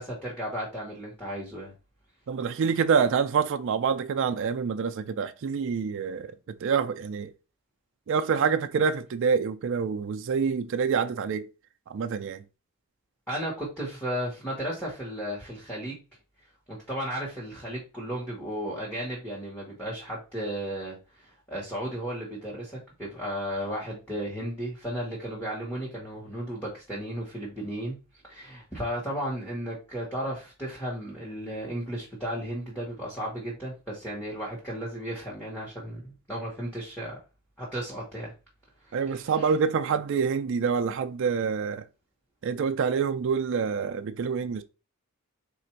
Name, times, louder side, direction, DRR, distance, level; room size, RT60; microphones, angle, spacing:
voice 1, 0.0-1.7 13.3-16.0 16.7-27.9 28.2-37.2 37.6-38.3 38.8-39.5, equal, 10° left, 1.2 m, -34 dB
voice 2, 2.3-7.3 8.1-11.5 11.9-12.4 38.9-41.8 42.4-44.6, right 6 dB, 55° right, 0.4 m, -26 dB
3.7 x 2.5 x 4.4 m
head